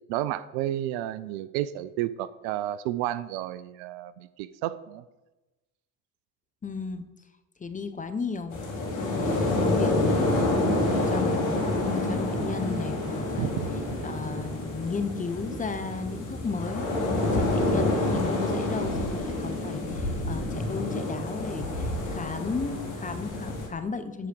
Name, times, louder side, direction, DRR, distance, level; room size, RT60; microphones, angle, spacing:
voice 1, 0.1-5.0 13.4-13.7, right 13 dB, 65° right, 16 dB, 0.5 m, -31 dB
voice 2, 6.6-7.0 7.6-13.5 14.0-16.8 17.2-24.3, left 4 dB, 20° left, 10 dB, 0.7 m, -35 dB
sound 1, 8.5-23.7, left 2 dB, 75° left, 2.2 m, -28 dB
7.8 x 4.9 x 6.0 m, 1.1 s
hypercardioid pair, 70°, 44 cm